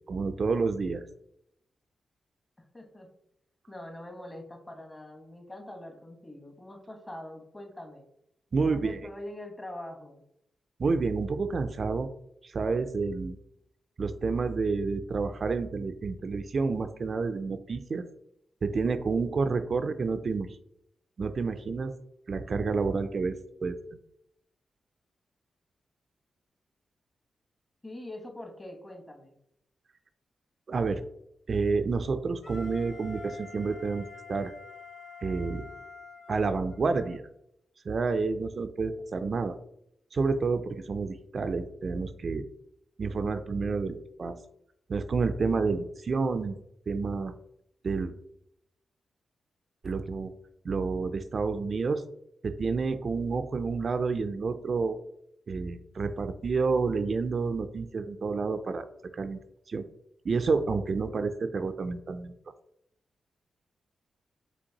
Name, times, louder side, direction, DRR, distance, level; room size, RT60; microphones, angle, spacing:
voice 1, 0.1-1.0 8.5-9.0 10.8-12.1 12.4-13.4 14.0-18.0 18.6-20.5 21.2-21.9 22.3-23.8 30.7-31.0 31.5-34.0 34.3-34.5 35.2-35.6 36.3-37.2 37.9-39.5 40.1-42.4 43.0-44.4 44.9-46.6 46.9-47.3 47.8-48.1 49.8-50.3 50.6-52.0 52.4-55.0 55.5-58.9 59.1-59.4 59.7-59.8 60.2-62.3, right 4 dB, 60° right, 10 dB, 0.3 m, -29 dB
voice 2, 2.6-3.1 3.7-8.0 8.6-10.2 27.8-29.4, left 1 dB, 25° left, 4 dB, 1.1 m, -43 dB
Wind instrument woodwind instrument, 32.4-37.2, left 4 dB, 55° left, 1.6 m, -46 dB
5.1 x 3.3 x 2.8 m, 0.78 s
cardioid pair, 50°, 0 cm